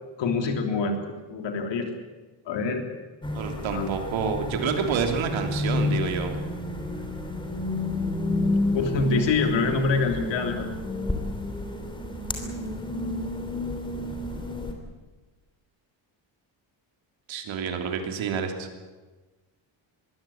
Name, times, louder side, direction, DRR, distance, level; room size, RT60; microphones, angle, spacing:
voice 1, 0.2-1.9 2.5-2.9 3.7-3.9 8.7-10.7, left 4 dB, 65° left, 5 dB, 3.5 m, -25 dB
sound 1, 3.2-14.7, left 2 dB, 10° left, 3.1 m, -30 dB
voice 2, 3.3-6.4 17.3-18.7, right 6 dB, 75° right, 5 dB, 3.3 m, -28 dB
23.0 x 16.0 x 8.8 m, 1.2 s
cardioid pair, 160°, 46 cm